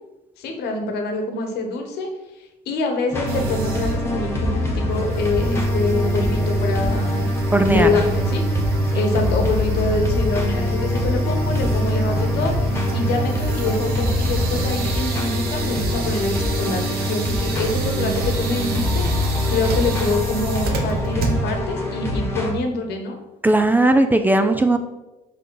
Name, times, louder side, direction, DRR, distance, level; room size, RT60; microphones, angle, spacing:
voice 1, 0.4-2.1 2.7-7.2 7.7-8.4 8.9-12.5 12.9-23.2, left 3 dB, 75° left, 4 dB, 1.2 m, -25 dB
sound 1, 3.1-22.5, left 1 dB, 15° left, 1.4 m, -26 dB
sound 2, 3.3-21.7, right 1 dB, 65° right, 1.0 m, -25 dB
voice 2, 7.5-7.9 23.4-24.8, right 2 dB, 10° right, 8 dB, 0.4 m, -17 dB
5.1 x 4.9 x 4.7 m, 1.0 s
cardioid pair, 110°, 17 cm